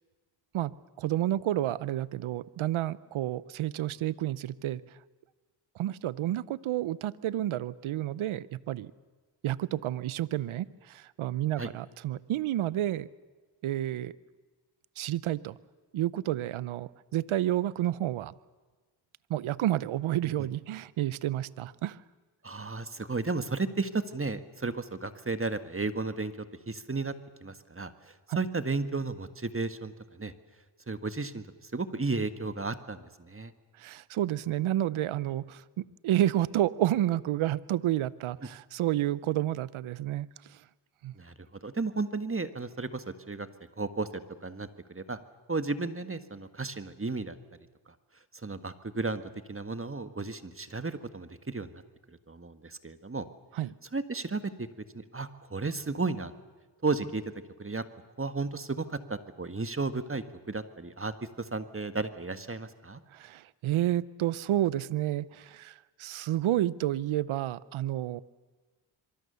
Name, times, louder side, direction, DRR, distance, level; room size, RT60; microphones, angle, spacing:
voice 1, 1.0-4.8 5.8-8.9 9.4-13.1 13.6-14.1 15.0-15.6 15.9-18.3 19.3-22.0 28.3-28.4 33.8-35.6 36.0-40.3 41.0-41.1 53.6-53.7 63.1-65.7 66.0-68.2, right 13 dB, 80° right, 19 dB, 0.7 m, -30 dB
voice 2, 22.4-27.1 27.4-30.3 30.9-33.5 41.2-43.5 43.8-45.2 45.5-47.4 47.9-48.0 48.3-49.2 49.5-51.7 52.1-53.3 53.9-54.7 54.9-56.3 56.8-57.2 57.6-57.8 58.2-63.0, right 3 dB, 25° right, 10 dB, 1.7 m, -34 dB
26.0 x 23.5 x 6.9 m, 1.3 s
supercardioid pair, 45°, 48 cm